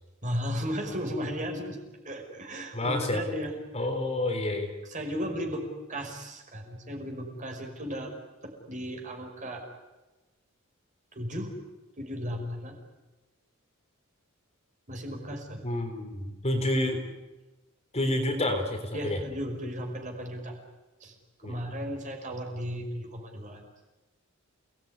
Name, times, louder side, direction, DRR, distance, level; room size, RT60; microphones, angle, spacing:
voice 1, 0.2-1.8 2.1-3.6 4.9-8.1 8.4-9.6 11.1-11.6 12.0-12.8 14.9-15.6 18.9-20.6 21.0-21.1 21.4-23.6, equal, 35° right, 2 dB, 5.5 m, -35 dB
voice 2, 2.7-3.3 3.7-4.7 15.6-17.0 17.9-19.2 21.4-21.6, left 1 dB, 30° left, 4 dB, 3.8 m, -29 dB
29.0 x 19.5 x 9.7 m, 1.1 s
head